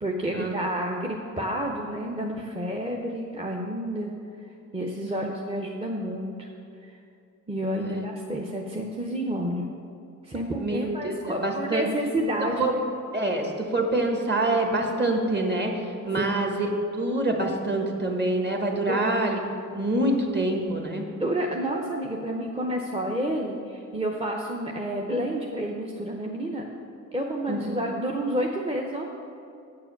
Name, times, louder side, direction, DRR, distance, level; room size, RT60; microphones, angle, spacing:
voice 1, 0.0-4.1 4.7-6.5 6.8-6.9 7.5-9.7 10.2-12.9 16.1-16.3 18.9-19.3 21.2-26.6 27.1-29.1, right 1 dB, 20° right, 0 dB, 0.7 m, -30 dB
voice 2, 10.6-11.9 12.4-12.7 13.1-16.7 16.9-19.4 19.7-21.0 27.5-27.8, right 2 dB, 35° right, 2 dB, 1.3 m, -26 dB
8.5 x 4.8 x 7.1 m, 2.6 s
cardioid pair, 100°, 31 cm